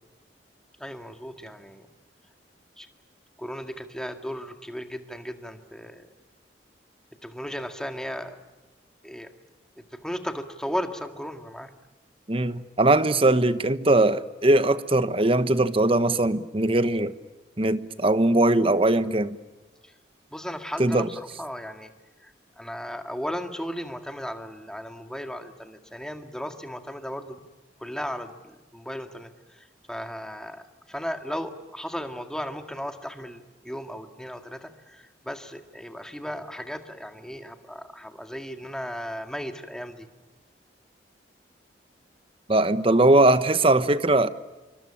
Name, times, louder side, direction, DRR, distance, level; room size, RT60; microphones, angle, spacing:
voice 1, 0.8-1.9 2.8-2.9 3.4-6.1 7.2-8.4 9.0-9.3 9.8-11.7 19.8-19.9 20.3-21.9 22.2-27.4 27.8-40.1, equal, 5° left, 6 dB, 1.9 m, -36 dB
voice 2, 12.3-17.1 17.6-19.4 20.8-21.1 42.5-44.3, right 2 dB, 30° right, 13 dB, 1.1 m, -20 dB
27.0 x 24.5 x 8.7 m, 1.2 s
head